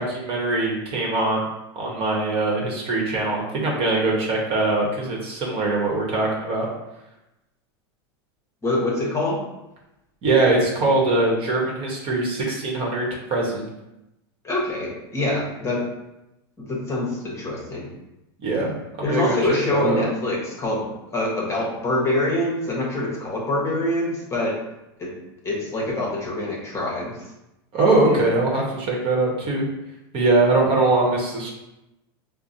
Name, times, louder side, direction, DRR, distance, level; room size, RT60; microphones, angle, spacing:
voice 1, 0.0-1.4 1.7-6.7 10.2-13.7 18.4-20.1 27.7-29.6 30.1-31.5, right 2 dB, 40° right, -2 dB, 1.1 m, -22 dB
voice 2, 8.6-9.4 14.4-15.8 16.6-17.9 19.0-24.5 25.0-25.1 25.4-27.2, left 2 dB, 20° left, -3 dB, 1.0 m, -25 dB
4.6 x 2.1 x 2.7 m, 0.92 s
supercardioid pair, 120°, 13 cm